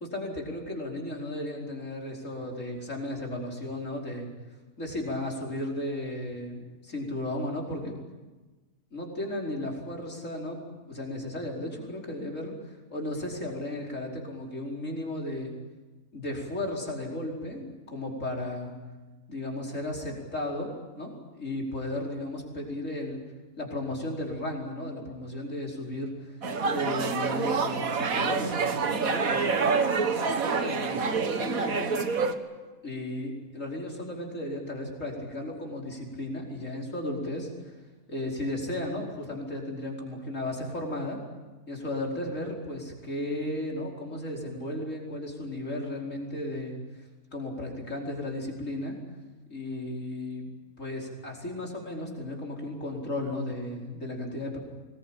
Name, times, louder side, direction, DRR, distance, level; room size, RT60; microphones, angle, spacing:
voice 1, 0.0-4.3 4.8-8.0 8.9-15.6 16.1-18.7 19.3-23.2 23.6-26.4 26.7-32.0 32.8-37.8 38.1-41.2 41.7-49.0 49.5-50.5 50.8-54.6, left 1 dB, 55° left, -1 dB, 5.3 m, -35 dB
sound 1, 26.4-32.3, right 5 dB, 65° right, 1.9 m, -27 dB
25.0 x 20.5 x 9.0 m, 1.2 s
omnidirectional pair, 1.6 m